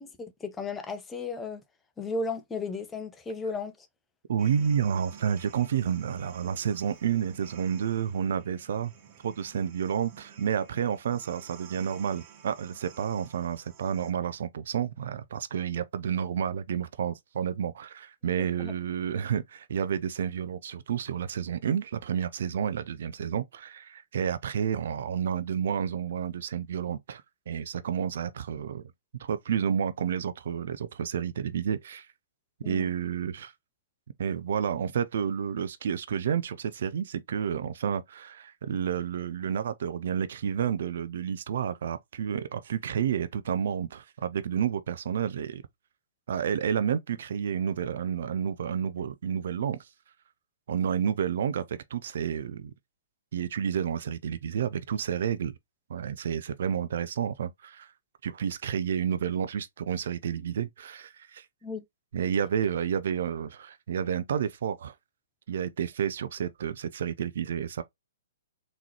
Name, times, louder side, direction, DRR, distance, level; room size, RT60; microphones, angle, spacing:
voice 1, 0.0-1.6 2.0-3.7 18.4-18.7 32.6-32.9 61.6-61.8, left 3 dB, 10° left, 0.6 m, -35 dB
voice 2, 4.3-8.9 9.2-28.9 29.2-32.1 32.6-33.5 34.2-45.6 46.3-49.9 50.7-52.7 53.3-55.5 55.9-57.9 58.2-61.5 62.1-64.9 65.5-67.8, right 8 dB, 60° right, 0.4 m, -30 dB
sound 1, 4.4-14.1, right 8 dB, 35° right, 0.9 m, -52 dB
3.6 x 3.0 x 2.9 m
figure-of-eight pair, 120°, 0 cm